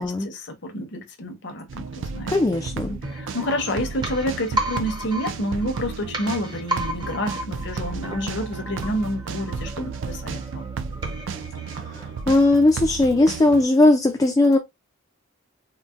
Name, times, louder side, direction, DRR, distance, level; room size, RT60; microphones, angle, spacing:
voice 1, 0.0-2.3 2.7-10.7, equal, 60° left, 0.8 m, -29 dB
sound 1, 1.7-13.6, right 5 dB, 65° right, 0.4 m, -33 dB
voice 2, 2.3-3.0 11.9-14.6, left 2 dB, 20° left, 0.3 m, -18 dB
sound 2, 3.0-12.7 13.0-13.1, right 1 dB, 20° right, 0.6 m, -34 dB
3.9 x 2.1 x 2.4 m
head